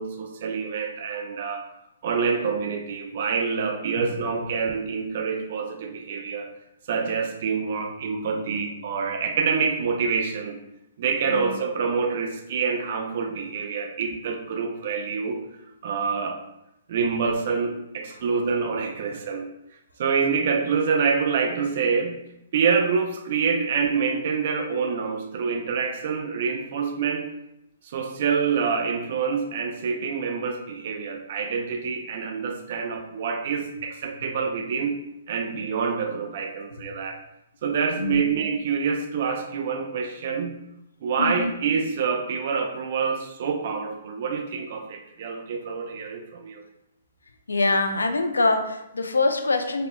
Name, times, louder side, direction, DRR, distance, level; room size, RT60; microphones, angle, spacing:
voice 1, 0.0-1.6 2.0-6.5 6.9-10.6 11.0-15.4 15.8-16.4 16.9-19.5 20.0-22.2 22.5-27.3 27.8-34.9 35.3-37.2 37.6-40.6 41.0-46.6, right 5 dB, 55° right, 4 dB, 0.5 m, -26 dB
voice 2, 11.3-11.6 38.0-38.3 41.2-41.5 47.5-49.9, left 3 dB, 85° left, 7 dB, 0.4 m, -24 dB
4.1 x 2.7 x 2.2 m, 0.85 s
figure-of-eight pair, 125°, 0 cm